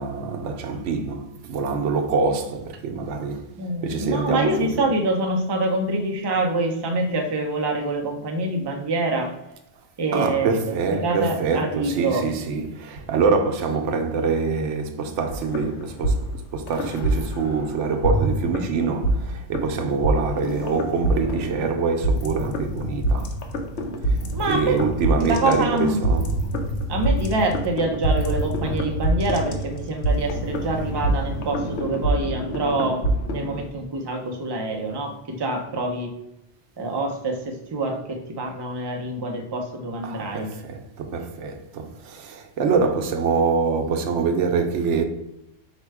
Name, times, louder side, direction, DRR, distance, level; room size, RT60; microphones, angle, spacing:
voice 1, 0.0-3.5 3.8-4.8 10.1-23.3 24.5-26.4 40.0-45.0, right 4 dB, 85° right, 0.9 m, -25 dB
voice 2, 3.5-9.3 10.0-12.3 24.3-24.8 25.3-26.0 26.9-36.1 36.8-40.5, right 2 dB, 30° right, 0.5 m, -26 dB
sound 1, 15.3-17.6 18.0-33.7, right 1 dB, 75° left, 1.0 m, -25 dB
4.9 x 2.2 x 4.6 m
omnidirectional pair, 1.2 m